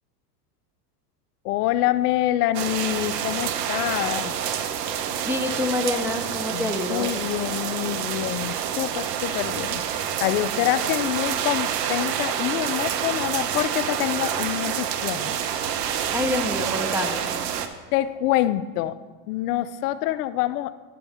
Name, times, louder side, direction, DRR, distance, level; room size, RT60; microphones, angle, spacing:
voice 1, 1.4-4.3 6.5-15.4 17.9-19.0 19.3-20.7, left 14 dB, 70° left, 14 dB, 0.5 m, -26 dB
sound 1, 2.5-17.7, right 9 dB, 80° right, 0.9 m, -28 dB
voice 2, 5.3-7.1 16.1-17.3, left 2 dB, 5° right, 3 dB, 0.5 m, -27 dB
10.0 x 8.5 x 3.4 m, 1.3 s
supercardioid pair, 110°, 49 cm